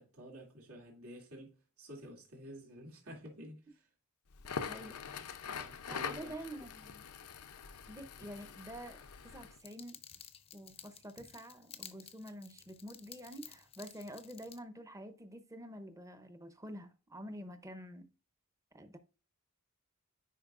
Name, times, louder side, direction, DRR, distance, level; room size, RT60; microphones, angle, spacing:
voice 1, 0.0-3.8 4.6-6.3, equal, 80° right, 2.4 m, -51 dB
Crackle, 4.3-9.6, left 6 dB, 80° left, 0.6 m, -44 dB
voice 2, 5.9-7.1 7.9-10.0 10.5-18.1 18.7-19.0, equal, 15° right, 0.7 m, -48 dB
sound 1, 9.6-14.6, left 8 dB, 25° left, 0.6 m, -54 dB
10.0 x 4.4 x 2.4 m
head